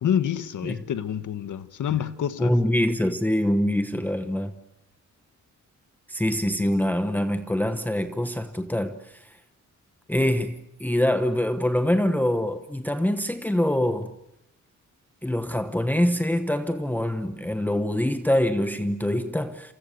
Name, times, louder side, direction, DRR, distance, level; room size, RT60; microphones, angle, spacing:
voice 1, 0.0-2.5, left 9 dB, 80° left, 1.6 m, -27 dB
voice 2, 2.4-4.5 6.1-9.4 10.1-14.1 15.2-19.7, left 1 dB, 5° left, 1.0 m, -24 dB
28.5 x 28.0 x 6.9 m
wide cardioid pair, 130°, 30 cm